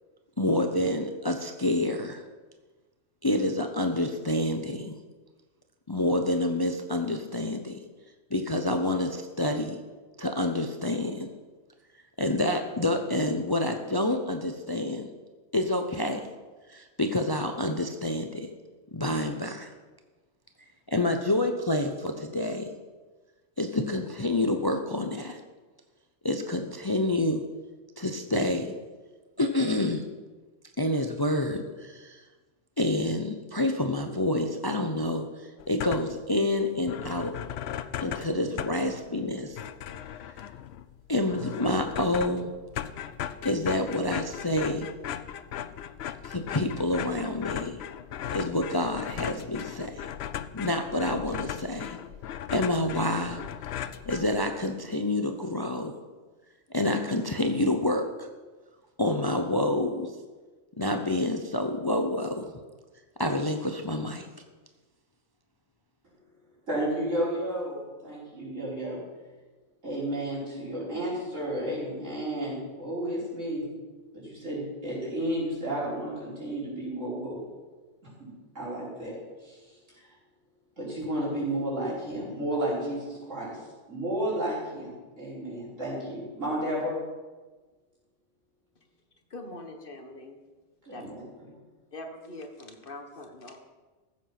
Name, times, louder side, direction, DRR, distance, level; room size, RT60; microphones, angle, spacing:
voice 1, 0.4-2.2 3.2-4.9 5.9-7.8 8.3-9.8 10.2-11.3 12.2-15.1 15.5-16.2 16.7-18.5 18.9-19.7 20.9-22.7 23.6-25.4 26.2-27.4 28.0-28.7 29.4-30.1 30.8-32.2 32.8-37.3 38.0-39.6 41.1-42.5 43.4-44.9 46.2-47.8 48.3-50.1 50.5-52.0 52.5-53.4 54.1-55.9 56.7-58.3 59.0-60.1 60.8-62.5 63.2-64.3, left 1 dB, 25° left, 5 dB, 0.6 m, -28 dB
sound 1, 35.6-36.3 36.6-36.7 36.9-54.7, left 10 dB, 65° left, 0.8 m, -37 dB
voice 2, 66.7-69.0 69.8-73.7 74.1-77.4 78.2-78.3 78.5-79.7 80.8-83.6 83.9-87.0 90.8-91.2, right 1 dB, 85° right, -7 dB, 5.1 m, -32 dB
voice 3, 89.3-90.4 90.9-91.3 91.9-93.7, left 2 dB, 45° left, 5 dB, 1.4 m, -43 dB
14.5 x 7.6 x 5.9 m, 1.3 s
omnidirectional pair, 1.3 m